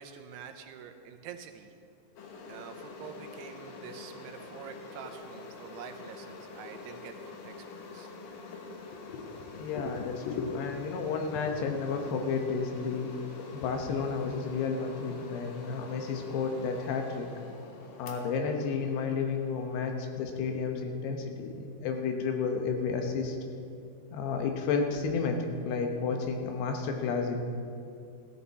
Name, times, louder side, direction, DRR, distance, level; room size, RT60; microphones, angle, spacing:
voice 1, 0.0-1.7 2.5-8.1, right 7 dB, 90° right, 5 dB, 2.9 m, -46 dB
sound 1, 2.2-20.6, left 3 dB, 65° left, 2.7 m, -46 dB
voice 2, 9.1-13.2 13.5-17.3 18.0-23.4 24.1-27.4, left 5 dB, 85° left, 4 dB, 3.2 m, -32 dB
15.5 x 13.5 x 4.2 m, 2.4 s
omnidirectional pair, 4.6 m